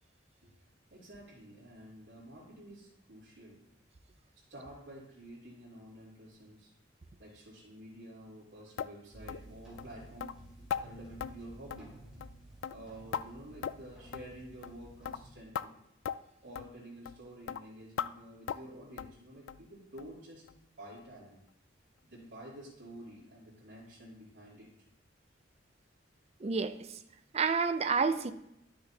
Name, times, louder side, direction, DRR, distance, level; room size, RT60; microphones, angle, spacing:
voice 1, 0.9-3.6 4.5-6.7 7.2-10.4 10.8-11.9 12.7-15.7 16.4-20.4 20.8-21.4 22.0-24.7, right 1 dB, 75° right, 3.0 m, -50 dB
sound 1, 8.8-8.9 9.3-9.5 9.8-9.9 10.2-10.3 10.7-10.8 11.2-11.3 11.7-11.9 12.2-12.4 12.6-13.2 13.6-13.9 14.1-14.3 14.6-14.8 15.1-15.2 15.6-15.7 16.1-16.2 16.6-16.7 17.1-17.2 17.5-17.6 18.0-18.1 18.5-18.7 19.0-19.2 19.5-19.6 20.0-20.1 20.5-20.6 21.0-21.1, left 8 dB, 85° left, 0.3 m, -38 dB
sound 2, 9.1-15.3, right 1 dB, 5° right, 2.6 m, -53 dB
voice 2, 26.4-26.8 27.3-28.3, right 5 dB, 35° right, 0.4 m, -29 dB
10.5 x 6.8 x 2.8 m
head